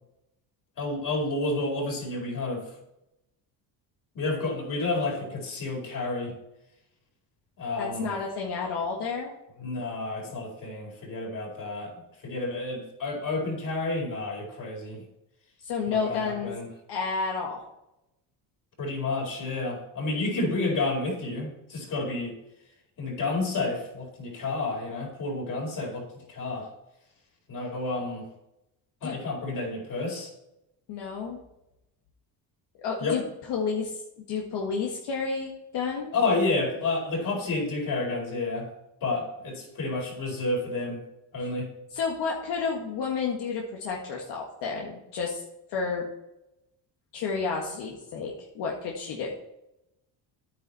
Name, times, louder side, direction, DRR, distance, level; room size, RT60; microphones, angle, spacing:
voice 1, 0.8-2.6 4.1-6.3 7.6-8.1 9.6-11.9 12.2-15.0 15.9-16.7 18.8-22.3 23.0-26.7 27.5-28.2 29.0-30.3 33.0-33.2 36.1-38.7 39.0-41.0 41.3-41.7, left 2 dB, 50° left, 0 dB, 4.6 m, -30 dB
voice 2, 7.8-9.3 15.6-16.5 16.9-17.6 29.0-29.2 30.9-31.4 32.8-33.2 33.5-34.0 34.3-36.1 41.4-41.5 41.9-45.4 45.7-46.0 47.1-49.3, left 5 dB, 75° left, -1 dB, 1.8 m, -31 dB
9.7 x 9.5 x 4.2 m, 0.88 s
cardioid pair, 120°, 42 cm